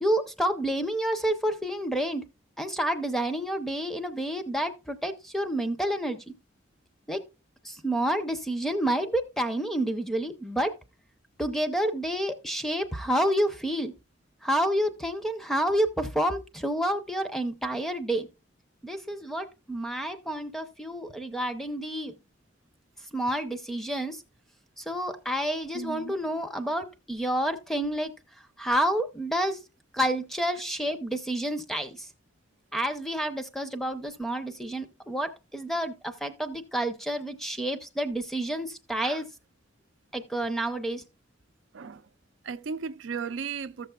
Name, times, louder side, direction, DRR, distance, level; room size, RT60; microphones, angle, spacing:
voice 1, 0.0-2.2 2.6-6.2 7.1-7.2 7.6-10.7 11.4-13.9 14.4-18.3 18.8-22.2 23.1-24.2 24.8-28.1 28.6-29.6 29.9-32.1 32.7-39.3 40.1-41.0, right 1 dB, ahead, 0.6 m, -29 dB
voice 2, 25.7-26.1 39.0-39.2 41.7-42.1 42.4-43.9, right 5 dB, 80° right, 0.5 m, -35 dB
14.5 x 6.7 x 2.3 m
head